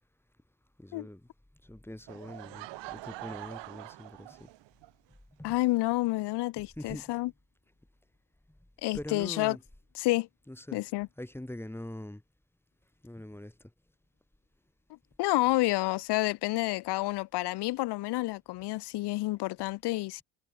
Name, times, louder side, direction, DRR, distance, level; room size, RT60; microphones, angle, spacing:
voice 1, 0.8-1.3 1.6-4.5 5.4-5.6 6.6-7.2 8.9-9.6 10.5-10.8 11.2-12.2 13.0-13.7, left 1 dB, 5° left, 7.6 m, -43 dB
Laughter / Crowd, 2.1-4.9, right 19 dB, 65° right, 3.7 m, -44 dB
voice 2, 5.4-7.3 8.8-9.6 10.0-10.3 10.7-11.1 15.2-20.2, left 19 dB, 60° left, 1.2 m, -29 dB
supercardioid pair, 85°, 46 cm